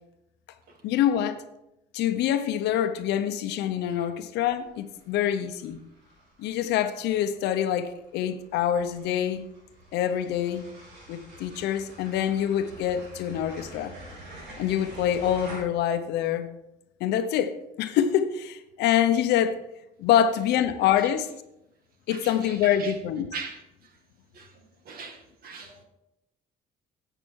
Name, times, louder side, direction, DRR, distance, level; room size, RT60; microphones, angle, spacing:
voice 1, 0.8-1.4 1.9-5.8 6.4-9.5 9.9-10.7 11.1-13.9 14.6-16.5 17.0-19.6 20.0-21.3 22.1-23.3, left 10 dB, 80° left, 0.8 m, -25 dB
sound 1, 4.5-15.6, right 1 dB, 90° right, 4.2 m, -48 dB
voice 2, 22.1-22.9 23.3-23.6 24.3-24.5 24.9-25.8, right 5 dB, 60° right, 1.9 m, -40 dB
11.0 x 7.9 x 4.6 m
cardioid pair, 110°, 17 cm